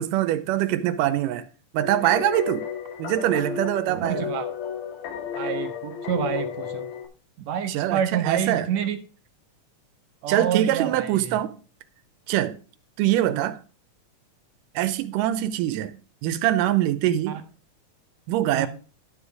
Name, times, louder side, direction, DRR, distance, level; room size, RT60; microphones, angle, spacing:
voice 1, 0.0-1.5 1.7-2.7 3.0-4.3 7.7-8.7 10.3-11.5 12.3-12.5 13.0-13.6 14.8-15.9 16.2-17.4 18.3-18.7, right 13 dB, 90° right, 2.3 m, -23 dB
sound 1, 1.8-7.1, left 8 dB, 70° left, 3.0 m, -32 dB
voice 2, 3.9-4.5 5.4-6.9 7.5-9.0 10.2-11.4 13.3-13.5 18.5-18.7, right 9 dB, 70° right, 1.8 m, -28 dB
11.0 x 5.5 x 4.7 m
omnidirectional pair, 3.7 m